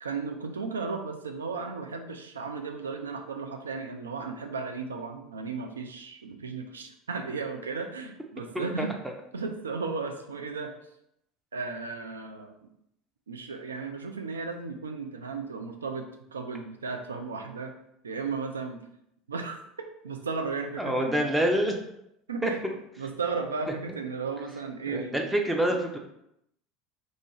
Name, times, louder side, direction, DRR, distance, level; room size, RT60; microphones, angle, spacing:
voice 1, 0.0-8.9 9.3-10.7 11.5-12.6 13.3-17.7 18.0-18.8 19.3-21.3 22.3-22.6 23.0-25.2 25.7-25.8, right 4 dB, 85° right, 5 dB, 0.3 m, -35 dB
voice 2, 8.5-8.9 20.8-21.8 22.4-22.5 24.9-26.0, right 1 dB, 10° right, 2 dB, 0.5 m, -26 dB
2.4 x 2.0 x 3.7 m, 0.79 s
figure-of-eight pair, 75°, 0 cm